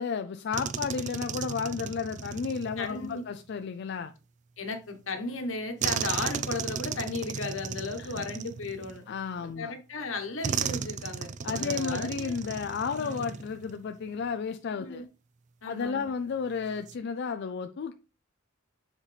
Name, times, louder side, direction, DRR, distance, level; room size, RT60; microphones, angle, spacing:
voice 1, 0.0-4.1 8.0-8.2 9.1-9.7 11.4-15.0 15.6-17.9, left 5 dB, 60° left, 0.4 m, -33 dB
sound 1, 0.5-3.2 5.8-9.3 10.4-13.8 14.1-14.3 16.6-17.0, right 7 dB, 40° right, 0.3 m, -35 dB
voice 2, 2.8-3.2 4.6-9.0 9.6-12.3 13.0-13.2 14.8-15.0 15.6-16.1, left 3 dB, 80° left, 1.3 m, -35 dB
7.2 x 4.2 x 3.3 m
head